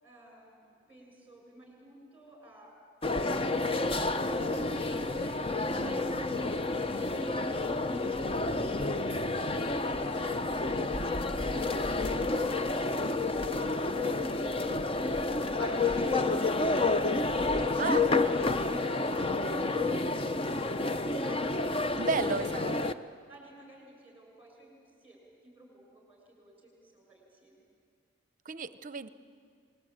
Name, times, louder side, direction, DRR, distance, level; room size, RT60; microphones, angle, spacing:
voice 1, 0.0-2.7 3.0-6.7 7.2-8.1 8.4-9.5 10.1-12.7 15.6-17.1 17.4-22.5 23.3-25.2 25.4-27.6, right 2 dB, 10° right, 0 dB, 6.9 m, -52 dB
sound 1, 3.0-22.9, left 2 dB, 30° left, 0.6 m, -30 dB
voice 2, 17.8-18.1 22.0-22.9 28.4-29.1, right 4 dB, 40° right, 13 dB, 0.7 m, -33 dB
27.0 x 20.5 x 8.9 m, 2.2 s
head